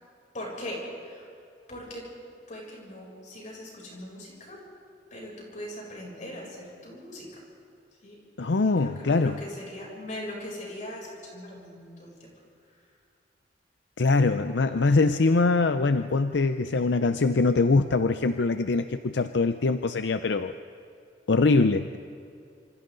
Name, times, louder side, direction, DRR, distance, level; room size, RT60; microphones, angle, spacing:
voice 1, 0.3-1.3 1.7-2.1 2.5-4.6 5.1-7.4 8.0-8.2 8.6-12.3 12.7-12.9, left 1 dB, 45° left, -3 dB, 7.2 m, -40 dB
voice 2, 8.4-9.3 14.0-20.6 21.3-22.0, left 3 dB, 80° left, 9 dB, 0.6 m, -23 dB
27.5 x 27.0 x 3.9 m, 2.5 s
head